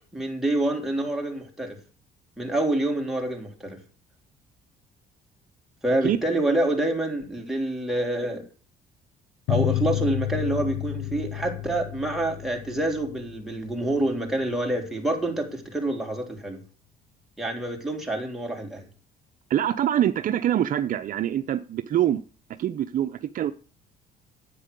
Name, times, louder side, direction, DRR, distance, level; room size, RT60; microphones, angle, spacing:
voice 1, 0.1-1.8 2.4-3.8 5.8-8.4 9.5-16.6 17.4-18.8, right 1 dB, ahead, 3.6 m, -27 dB
sound 1, 9.5-14.6, left 15 dB, 80° left, 0.7 m, -31 dB
voice 2, 19.5-22.2 22.6-23.5, right 11 dB, 55° right, 0.8 m, -24 dB
9.8 x 8.5 x 6.9 m
cardioid pair, 110°, 17 cm